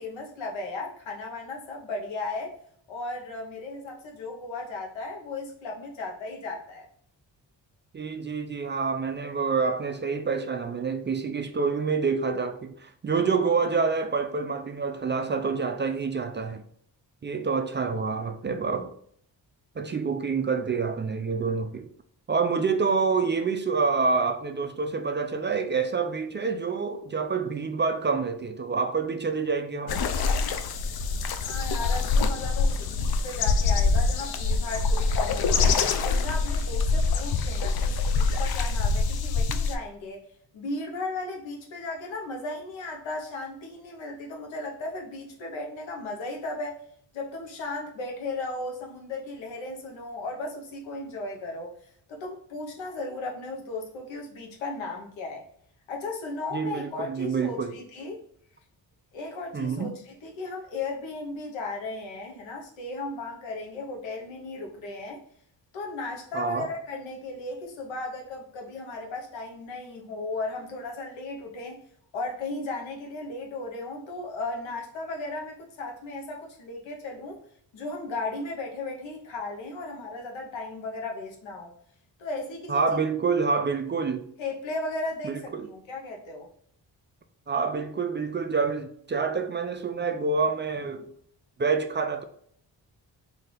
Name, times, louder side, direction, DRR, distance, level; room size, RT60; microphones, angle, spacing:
voice 1, 0.0-2.5 2.9-6.9 31.4-35.7 36.0-40.2 40.5-46.8 47.1-51.7 52.1-55.4 55.9-58.2 59.1-65.2 65.7-71.8 72.1-77.4 77.7-81.7 82.2-83.0 84.4-86.5, left 2 dB, 90° left, 1.0 m, -36 dB
voice 2, 7.9-16.6 17.2-18.9 19.8-21.9 22.3-30.0 56.5-57.7 59.5-59.9 66.3-66.7 82.7-84.3 85.2-85.7 87.5-91.1 91.6-92.2, right 5 dB, 25° right, 0.3 m, -27 dB
sound 1, 29.9-39.8, left 4 dB, 55° left, 0.5 m, -25 dB
3.2 x 2.8 x 3.7 m
cardioid pair, 65°, 44 cm